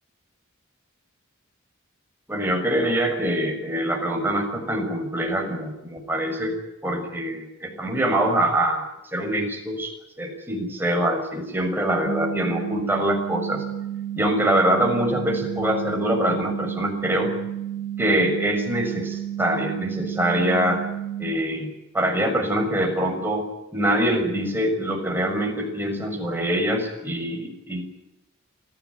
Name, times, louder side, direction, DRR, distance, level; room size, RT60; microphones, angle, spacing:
voice 1, 2.3-6.6 6.8-8.8 9.1-13.6 14.1-17.3 18.0-20.8 21.2-23.4 23.7-27.8, right 1 dB, 10° right, 2 dB, 6.5 m, -24 dB
sound 1, 12.0-21.3, right 10 dB, 90° left, 2.6 m, -31 dB
26.5 x 16.0 x 9.7 m, 0.94 s
head